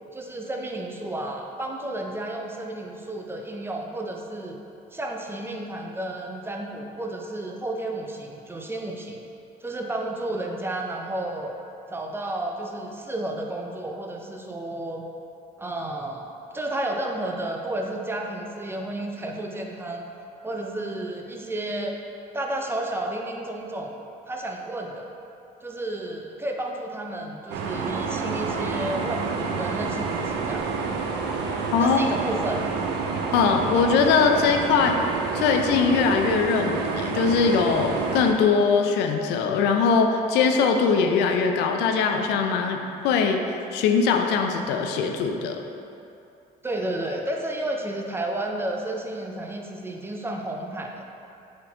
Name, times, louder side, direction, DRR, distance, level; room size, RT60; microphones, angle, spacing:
voice 1, 0.1-4.6 4.9-9.2 9.6-11.5 11.9-15.1 15.6-16.3 16.5-20.1 20.4-22.0 22.3-23.9 24.3-25.1 25.6-30.7 31.8-32.6 46.6-51.1, right 1 dB, 15° right, 1 dB, 0.3 m, -32 dB
sound 1, 27.5-38.3, right 5 dB, 85° right, 0.4 m, -28 dB
voice 2, 33.3-35.0 35.3-43.4 43.7-45.6, left 5 dB, 85° left, 4 dB, 0.4 m, -21 dB
4.1 x 4.0 x 2.7 m, 2.7 s
cardioid pair, 110°, 17 cm